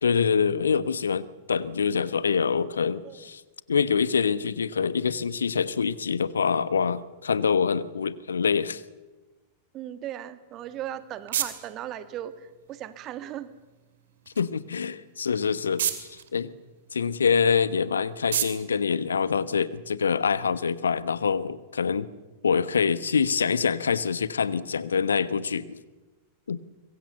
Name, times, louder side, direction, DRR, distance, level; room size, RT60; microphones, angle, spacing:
voice 1, 0.0-3.4 3.7-8.8 14.4-16.5 16.9-22.1 22.4-25.8 26.5-26.6, left 6 dB, 70° left, 17 dB, 1.1 m, -25 dB
voice 2, 9.7-13.5, right 11 dB, 35° right, 11 dB, 1.8 m, -37 dB
sound 1, 10.5-19.9, right 10 dB, 60° right, 2.6 m, -37 dB
25.5 x 23.0 x 7.0 m, 1.2 s
figure-of-eight pair, 90°, 0 cm